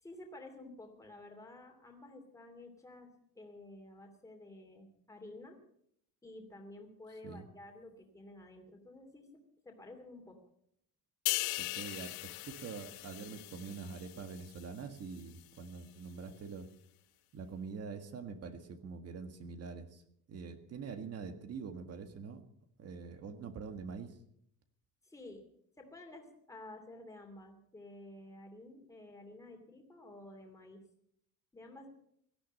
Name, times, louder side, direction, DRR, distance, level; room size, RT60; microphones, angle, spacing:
voice 1, 0.0-5.6 6.2-10.4 25.0-25.5 25.8-30.8 31.5-31.9, left 2 dB, 10° left, 3 dB, 2.7 m, -52 dB
sound 1, 11.3-14.8 15.2-15.4, left 22 dB, 80° left, 0.6 m, -39 dB
voice 2, 11.6-16.7 17.3-20.0 20.3-22.4 22.8-24.2, right 5 dB, 40° right, 8 dB, 1.7 m, -45 dB
17.5 x 13.0 x 5.4 m, 0.71 s
cardioid pair, 155°, 36 cm